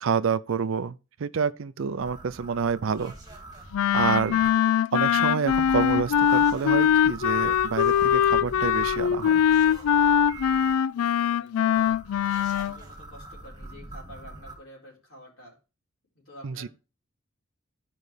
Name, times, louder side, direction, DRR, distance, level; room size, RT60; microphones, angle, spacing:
voice 1, 0.0-3.1 3.9-4.4 4.9-9.4 16.4-16.7, right 6 dB, 65° right, 0.4 m, -28 dB
sound 1, 2.0-4.5 5.5-10.7 11.7-14.6, right 2 dB, 15° right, 1.8 m, -42 dB
Wind instrument woodwind instrument, 3.7-12.7, left 9 dB, 80° left, 0.3 m, -22 dB
voice 2, 10.8-11.8 12.4-15.6 16.1-16.7, equal, 65° left, 4.3 m, -49 dB
12.5 x 5.3 x 3.3 m
head